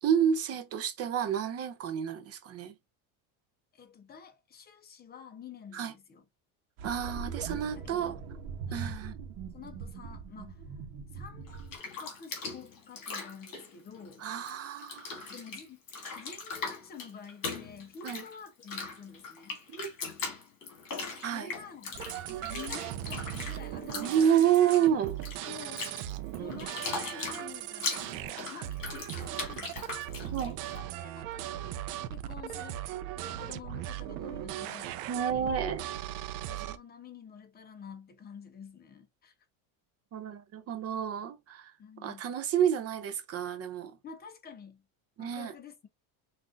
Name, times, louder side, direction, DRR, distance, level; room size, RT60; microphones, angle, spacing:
voice 1, 0.0-2.7 5.7-5.9 6.8-8.2 8.7-9.1 14.2-15.3 18.0-18.2 19.8-19.9 21.2-21.5 22.4-22.6 24.0-25.2 30.3-30.6 35.1-35.8 40.1-41.7 42.0-44.0 45.2-45.5, right 9 dB, 35° right, 0.6 m, -29 dB
voice 2, 3.7-6.3 7.7-8.2 8.7-9.0 9.5-10.7 11.1-14.2 15.3-15.8 16.2-19.6 21.3-21.9 22.5-24.5 25.5-26.1 26.4-31.7 32.1-32.8 33.2-35.0 36.5-39.3 41.8-42.2 44.0-44.8 45.2-45.9, left 6 dB, 20° left, 0.8 m, -49 dB
sound 1, 6.8-11.8, right 5 dB, 65° right, 1.0 m, -41 dB
Bathtub (filling or washing), 11.5-14.5 14.8-30.8, left 4 dB, 45° left, 2.2 m, -40 dB
sound 2, 21.9-36.8, right 12 dB, 80° right, 0.7 m, -38 dB
6.1 x 2.6 x 2.5 m
cardioid pair, 145°, 46 cm